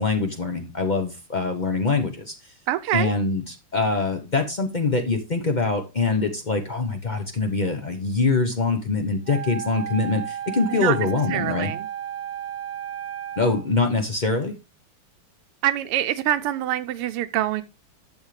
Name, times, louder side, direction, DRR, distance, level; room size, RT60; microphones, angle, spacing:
voice 1, 0.0-2.3 2.9-11.7 13.4-14.5, left 3 dB, 70° left, 0.4 m, -24 dB
voice 2, 2.7-3.1 10.7-11.0 11.3-11.9 15.6-17.6, right 13 dB, 90° right, 1.6 m, -25 dB
Wind instrument woodwind instrument, 9.3-13.7, right 9 dB, 55° right, 1.1 m, -33 dB
12.5 x 7.2 x 3.2 m
omnidirectional pair, 2.4 m